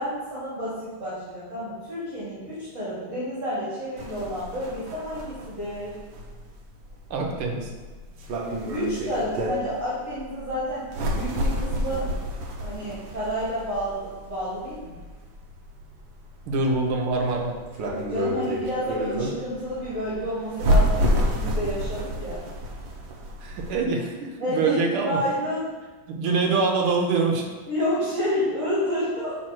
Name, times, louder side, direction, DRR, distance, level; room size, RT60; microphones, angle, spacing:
voice 1, 0.0-5.9 8.7-10.8 11.1-12.1 12.6-15.0 18.1-22.4 24.4-24.8 25.1-25.6 27.7-29.4, equal, 40° right, -10 dB, 2.2 m, -30 dB
sound 1, 4.0-23.8, equal, 70° right, 1.6 m, -29 dB
voice 2, 7.1-7.7 16.5-17.6 23.4-25.2 26.1-27.4, right 3 dB, 85° right, 1 dB, 1.8 m, -24 dB
6.2 x 4.1 x 4.4 m, 1.4 s
omnidirectional pair, 2.3 m